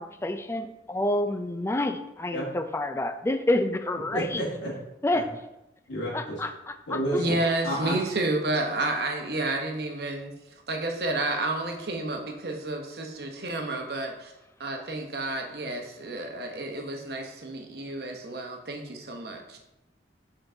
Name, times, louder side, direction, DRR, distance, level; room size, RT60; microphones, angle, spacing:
voice 1, 0.0-4.4 5.0-5.3 6.1-7.4, left 1 dB, 15° left, 8 dB, 0.3 m, -28 dB
voice 2, 4.1-4.7 5.1-5.2 5.9-6.4 6.9-7.4 7.6-7.9, right 1 dB, 85° left, -5 dB, 1.6 m, -30 dB
voice 3, 7.2-10.3 10.7-14.3 14.6-19.6, right 2 dB, 60° right, 3 dB, 0.9 m, -30 dB
7.0 x 3.8 x 3.8 m, 0.93 s
head